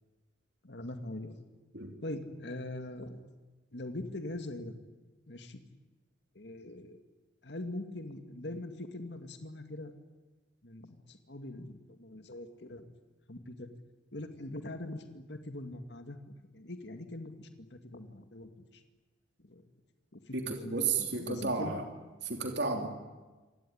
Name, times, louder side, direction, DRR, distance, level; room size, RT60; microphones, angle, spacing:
voice 1, 0.6-1.4 2.0-3.2 3.7-4.8 5.3-5.6 6.4-7.0 7.4-9.9 10.6-12.9 13.3-13.7 14.1-16.2 16.5-18.8 19.4-19.6 20.1-21.8, left 1 dB, 65° left, 7 dB, 2.1 m, -42 dB
voice 2, 20.3-21.8 22.2-22.9, right 4 dB, 65° right, 4 dB, 3.0 m, -32 dB
26.5 x 18.0 x 10.0 m, 1.2 s
head